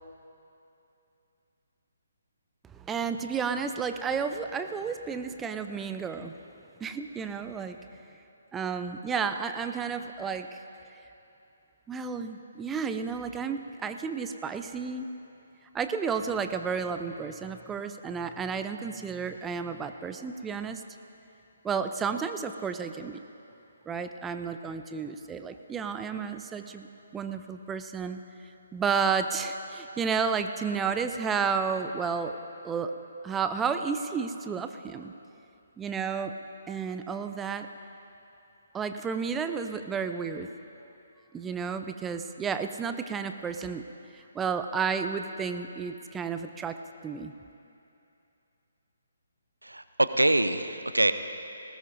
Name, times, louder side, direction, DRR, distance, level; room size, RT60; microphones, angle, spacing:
voice 1, 2.7-6.4 6.8-7.8 8.5-10.6 11.9-15.1 15.7-20.8 21.6-23.2 23.9-26.9 27.1-28.2 28.7-32.4 32.6-32.9 33.2-35.1 35.8-36.3 36.7-37.7 38.7-40.5 41.3-43.8 44.1-46.8 47.0-47.3, right 6 dB, 10° right, 8 dB, 0.5 m, -32 dB
voice 2, 49.6-51.1, right 1 dB, 90° right, 11 dB, 0.6 m, -24 dB
20.0 x 18.5 x 2.6 m, 2.8 s
figure-of-eight pair, 140°, 0 cm